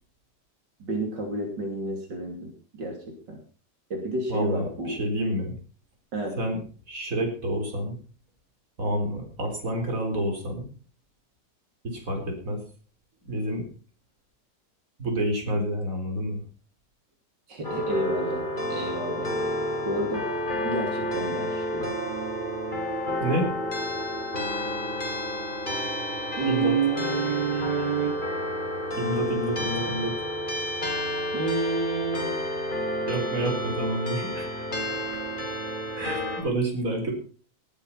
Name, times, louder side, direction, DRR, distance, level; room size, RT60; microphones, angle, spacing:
voice 1, 0.8-3.4 3.9-5.0 6.1-6.4 17.5-18.4 18.7-19.3 19.8-20.3 20.6-21.9 26.4-28.2 31.3-32.4, right 3 dB, 80° right, 2 dB, 3.5 m, -29 dB
voice 2, 4.3-5.6 6.4-6.6 6.9-8.0 8.8-10.7 11.8-12.6 13.3-13.7 15.0-16.4 23.2-23.5 26.5-26.8 29.0-30.2 33.1-34.9 36.0-37.1, right 1 dB, 50° right, 2 dB, 4.5 m, -29 dB
sound 1, 17.6-36.4, left 1 dB, 25° left, 3.6 m, -30 dB
18.5 x 8.8 x 5.8 m, 0.41 s
omnidirectional pair, 1.9 m